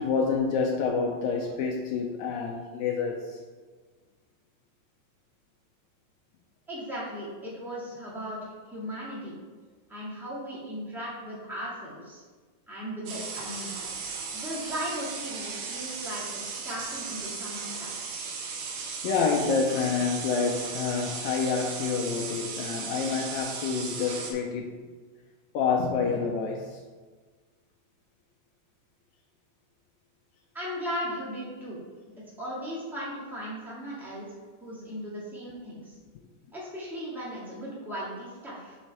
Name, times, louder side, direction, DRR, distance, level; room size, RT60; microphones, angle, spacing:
voice 1, 0.0-3.4 19.0-24.7 25.5-26.8, left 5 dB, 80° left, 1 dB, 1.8 m, -28 dB
voice 2, 6.7-9.4 9.9-12.2 12.7-13.8 14.3-17.9 30.5-31.8 32.4-34.3 34.6-36.0 36.5-38.8, equal, ahead, -7 dB, 0.5 m, -37 dB
sound 1, 13.1-24.3, right 5 dB, 80° right, 2.5 m, -36 dB
8.4 x 3.2 x 4.6 m, 1.4 s
omnidirectional pair, 3.7 m